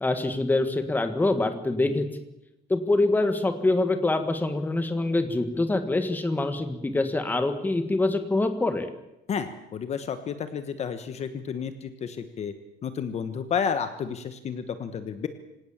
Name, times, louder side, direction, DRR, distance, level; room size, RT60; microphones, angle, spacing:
voice 1, 0.0-2.1 2.7-8.9, left 2 dB, 10° left, 8 dB, 1.7 m, -25 dB
voice 2, 9.3-12.5 12.8-15.3, left 7 dB, 40° left, 10 dB, 1.3 m, -31 dB
25.5 x 17.5 x 7.4 m, 0.88 s
cardioid pair, 180°, 18 cm